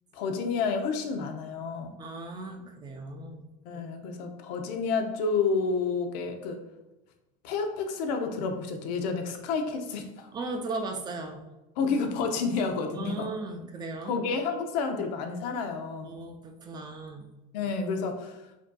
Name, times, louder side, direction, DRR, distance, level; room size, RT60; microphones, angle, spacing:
voice 1, 0.1-1.9 3.7-6.6 7.4-10.3 11.8-13.3 14.0-16.1 17.5-18.4, left 4 dB, 75° left, 5 dB, 0.7 m, -30 dB
voice 2, 2.0-3.5 10.3-11.5 12.9-14.2 16.0-17.3, right 3 dB, 20° right, 4 dB, 0.4 m, -37 dB
5.0 x 2.7 x 2.2 m, 1.0 s
supercardioid pair, 140°, 21 cm